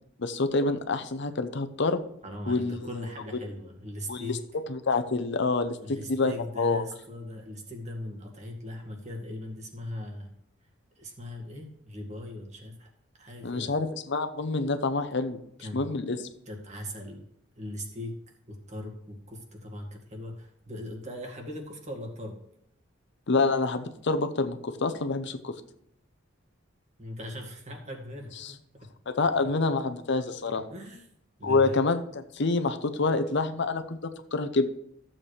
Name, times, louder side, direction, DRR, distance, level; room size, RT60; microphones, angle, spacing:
voice 1, 0.2-2.0 2.5-3.0 4.1-4.4 4.7-6.8 13.4-16.3 23.3-25.5 28.4-28.5 29.1-30.7 31.4-34.7, left 3 dB, 65° left, 9 dB, 0.7 m, -27 dB
voice 2, 2.2-4.4 5.8-10.3 11.0-12.9 13.2-13.7 15.6-15.8 16.5-17.2 17.6-18.2 18.5-22.4 27.0-28.6 30.5-31.1 31.4-31.8, left 1 dB, 35° right, 1 dB, 2.0 m, -39 dB
14.5 x 7.4 x 3.3 m, 0.71 s
head